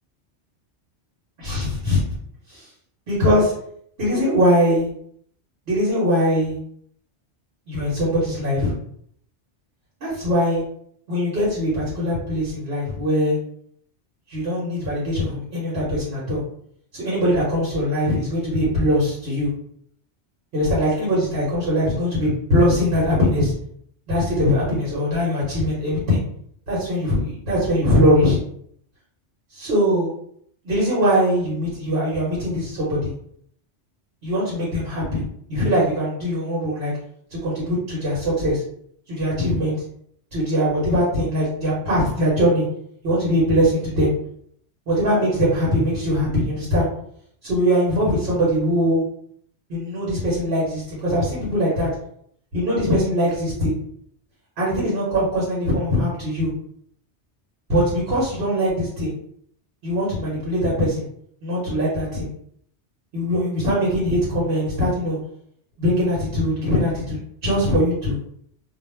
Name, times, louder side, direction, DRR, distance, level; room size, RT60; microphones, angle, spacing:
voice 1, 1.4-2.0 2.5-2.7 3.1-3.5 4.0-4.9 5.7-6.6 7.7-8.7 10.0-10.6 11.1-13.4 14.3-16.4 16.9-19.5 20.5-23.5 24.1-26.2 26.7-28.4 29.5-30.1 30.6-33.1 34.2-35.2 35.5-36.9 37.4-38.6 39.1-39.8 40.3-42.7 43.0-44.1 44.9-46.9 47.4-49.0 49.7-51.9 52.5-53.8 54.6-56.5 57.7-59.1 59.8-61.1 61.4-62.3 63.1-65.2 65.8-68.2, equal, 65° right, -6 dB, 1.1 m, -21 dB
2.4 x 2.0 x 3.1 m, 0.66 s
omnidirectional pair, 1.2 m